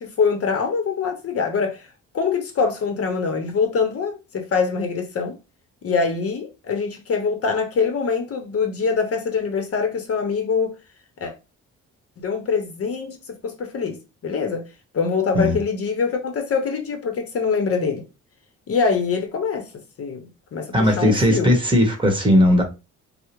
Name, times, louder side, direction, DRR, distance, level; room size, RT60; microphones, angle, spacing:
voice 1, 0.0-1.9 2.1-5.4 5.8-10.7 11.2-11.3 12.2-14.6 14.9-18.0 18.7-19.7 20.0-21.5, left 5 dB, 50° left, 0.8 m, -24 dB
voice 2, 20.7-22.6, left 1 dB, 15° right, 1.2 m, -17 dB
4.6 x 2.0 x 3.0 m
cardioid pair, 90°, 30 cm